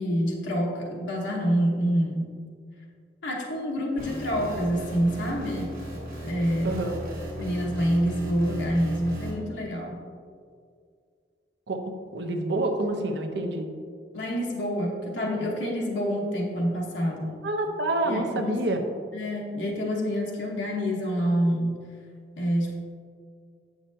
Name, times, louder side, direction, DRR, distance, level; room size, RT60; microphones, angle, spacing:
voice 1, 0.0-2.4 3.2-5.8 6.2-6.8 7.4-10.0 14.1-17.4 18.0-18.6 19.1-21.8 22.4-22.8, equal, 80° left, -2 dB, 1.0 m, -27 dB
sound 1, 4.0-9.3, equal, 50° right, 1.4 m, -36 dB
voice 2, 6.6-7.0 11.7-11.8 12.1-13.7 17.4-18.8, right 2 dB, 70° right, 4 dB, 0.6 m, -27 dB
7.5 x 5.9 x 2.6 m, 2.1 s
head